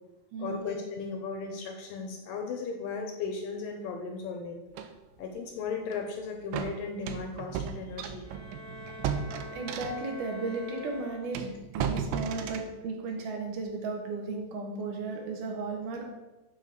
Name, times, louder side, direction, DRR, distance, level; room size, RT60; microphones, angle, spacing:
voice 1, 0.4-4.6 5.2-8.3 8.9-9.0 12.4-12.6, left 5 dB, 75° left, 3 dB, 2.2 m, -36 dB
sound 1, 4.8-4.9 5.9-6.1 6.5-10.2 10.8-10.9 11.3-12.7, right 7 dB, 90° right, 2.0 m, -35 dB
Bowed string instrument, 8.2-11.7, left 2 dB, 35° right, 1.0 m, -45 dB
voice 2, 9.4-16.1, right 3 dB, 65° right, 1 dB, 2.4 m, -35 dB
8.6 x 3.9 x 6.4 m, 1.1 s
omnidirectional pair, 4.8 m